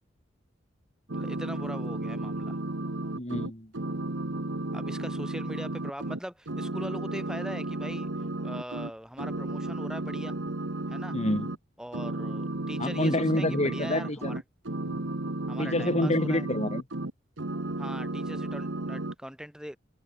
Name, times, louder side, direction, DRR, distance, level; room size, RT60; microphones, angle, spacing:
voice 1, 1.1-2.6 4.7-8.1 8.4-10.4 10.9-11.2 11.8-14.4 15.5-16.4 17.8-19.8, equal, 5° right, 6.7 m, -41 dB
sound 1, 1.1-6.2 6.5-8.9 9.2-11.6 11.9-17.1 17.4-19.1, right 2 dB, 80° right, 1.6 m, -33 dB
voice 2, 3.1-3.7 11.1-11.5 12.8-14.4 14.8-15.0 15.6-16.8, left 1 dB, 35° left, 5.5 m, -28 dB
head